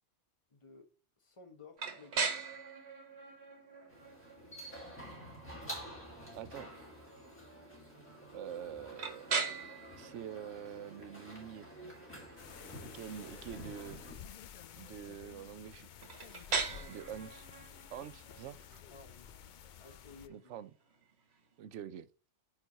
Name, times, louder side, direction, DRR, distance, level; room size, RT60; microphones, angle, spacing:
voice 1, 0.5-0.9 1.2-2.6 12.5-12.7 16.5-17.0 18.9-19.4 19.8-20.5, left 4 dB, 25° left, 1.2 m, -56 dB
sound 1, 1.8-21.5, right 4 dB, 65° right, 1.4 m, -42 dB
sound 2, 3.9-14.2, right 1 dB, 10° left, 2.7 m, -49 dB
voice 2, 6.4-6.7 8.3-9.3 10.0-11.7 12.8-14.0 14.8-16.1 16.4-16.5 16.9-17.5 17.9-18.8 20.3-20.7 21.6-22.1, right 9 dB, 80° right, 0.9 m, -46 dB
sound 3, 12.4-20.3, left 9 dB, 60° left, 0.5 m, -52 dB
9.1 x 3.9 x 3.9 m
omnidirectional pair, 1.2 m